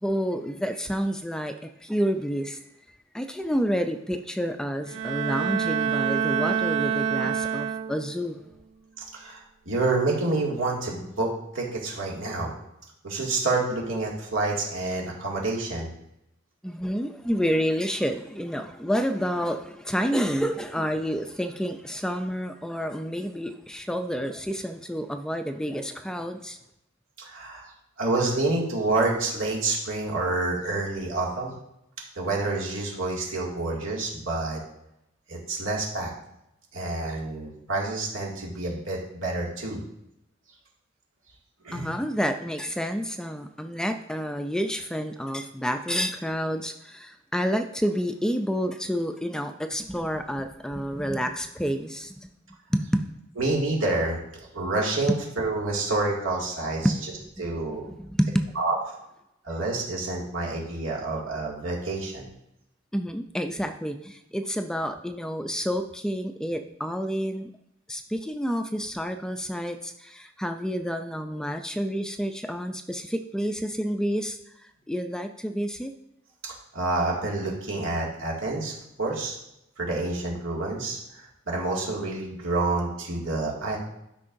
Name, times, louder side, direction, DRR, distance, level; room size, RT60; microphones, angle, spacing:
voice 1, 0.0-2.6 3.1-8.4 16.6-26.6 41.7-52.3 52.7-53.2 55.1-55.2 56.8-57.0 57.8-58.5 62.9-67.5 67.9-75.9, equal, 5° left, 6 dB, 0.3 m, -29 dB
Bowed string instrument, 4.9-8.3, right 7 dB, 65° right, 0.4 m, -27 dB
voice 2, 9.1-12.5 13.0-15.9 27.2-31.6 32.2-34.6 35.3-36.1 36.7-39.8 41.6-41.9 53.4-56.9 57.4-57.9 58.6-58.8 59.4-62.3 76.4-79.3 79.8-83.8, right 2 dB, 85° right, -3 dB, 2.2 m, -28 dB
12.0 x 5.4 x 2.6 m, 0.83 s
head